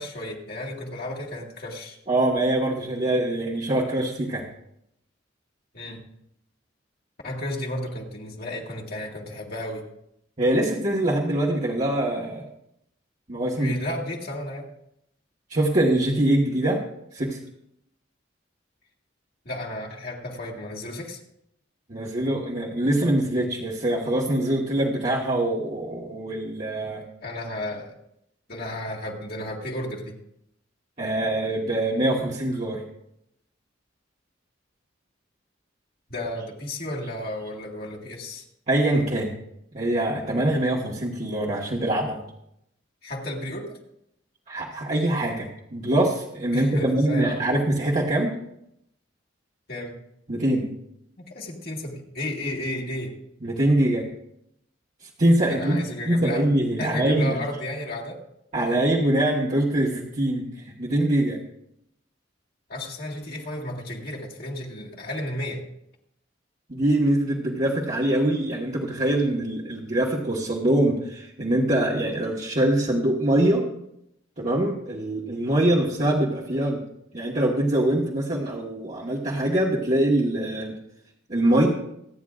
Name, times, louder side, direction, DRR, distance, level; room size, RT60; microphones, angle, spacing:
voice 1, 0.0-2.0 5.7-6.0 7.2-9.8 13.6-14.7 19.5-21.2 27.2-27.9 28.5-30.1 36.1-38.4 43.0-43.8 46.5-47.4 49.7-50.0 51.2-53.1 55.5-56.5 56.8-58.2 62.7-65.6, left 1 dB, 50° left, -2 dB, 2.1 m, -33 dB
voice 2, 2.1-4.5 10.4-12.4 13.3-13.8 15.5-16.8 17.1-17.4 21.9-27.0 31.0-32.8 38.7-39.3 39.7-42.2 44.5-48.3 50.3-50.7 53.4-54.0 55.2-57.4 58.5-61.4 66.7-73.6 74.4-76.8 77.1-80.8 81.3-81.7, right 1 dB, 40° right, -5 dB, 1.5 m, -23 dB
26.5 x 9.3 x 2.5 m, 0.78 s
head